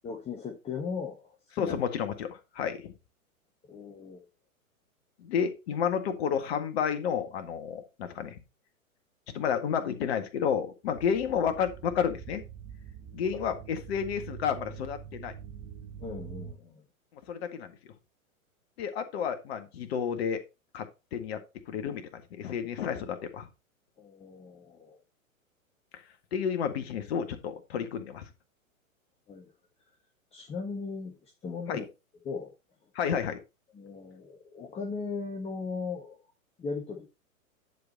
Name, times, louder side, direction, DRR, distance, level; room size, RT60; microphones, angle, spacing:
voice 1, 0.0-1.7 3.7-4.2 13.3-13.4 16.0-16.8 24.0-25.0 29.3-29.5 30.3-31.8 32.2-32.5 33.7-36.2 36.6-37.1, left 4 dB, 15° left, 3 dB, 1.3 m, -38 dB
voice 2, 1.6-2.9 5.2-8.4 9.3-12.4 13.1-15.3 17.3-17.7 18.8-20.4 20.7-21.4 21.7-23.5 26.3-28.2 31.7-31.8 33.0-33.4, left 7 dB, 45° left, 8 dB, 1.8 m, -31 dB
sound 1, 10.9-16.5, right 8 dB, 25° right, 1.5 m, -45 dB
10.5 x 5.0 x 4.2 m, 0.27 s
figure-of-eight pair, 110°, 42 cm